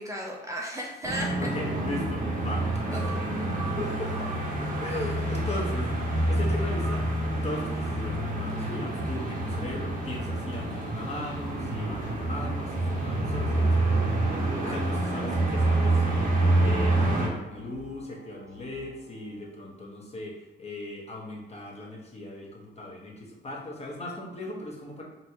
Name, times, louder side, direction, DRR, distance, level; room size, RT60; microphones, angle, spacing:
voice 1, 0.0-1.4 2.9-3.3 14.6-14.9, equal, 15° right, -2 dB, 0.5 m, -35 dB
sound 1, 1.0-17.3, right 2 dB, 45° right, 0.8 m, -27 dB
voice 2, 1.3-3.1 3.7-4.3 4.8-25.0, left 1 dB, 30° left, -1 dB, 0.9 m, -38 dB
sound 2, 9.0-19.4, left 3 dB, 60° left, 0.7 m, -50 dB
4.1 x 2.1 x 2.8 m, 1.0 s
cardioid pair, 90°, 20 cm